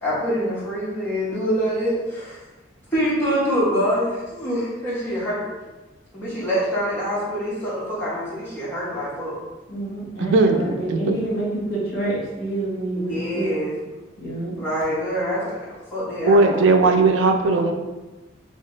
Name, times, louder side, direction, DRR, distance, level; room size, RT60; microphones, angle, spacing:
voice 1, 0.0-2.4 2.9-5.5 6.1-9.4 12.9-13.7 14.6-16.7, equal, 10° left, -10 dB, 1.2 m, -25 dB
voice 2, 9.7-13.5 14.2-14.7, right 2 dB, 50° left, -6 dB, 1.3 m, -27 dB
voice 3, 10.2-11.2 16.3-17.7, right 3 dB, 85° right, 5 dB, 0.4 m, -18 dB
3.2 x 2.8 x 3.2 m, 1.2 s
head